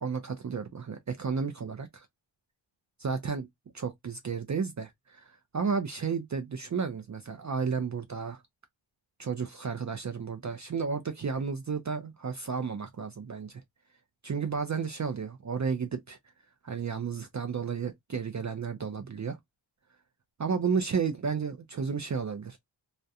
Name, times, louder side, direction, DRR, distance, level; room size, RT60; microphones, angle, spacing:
voice 1, 0.0-2.1 3.0-3.5 3.7-8.4 9.2-13.6 14.2-16.2 16.6-19.4 20.4-22.6, right 5 dB, 40° right, 0.4 m, -32 dB
2.4 x 2.1 x 2.6 m
wide cardioid pair, 85°, 48 cm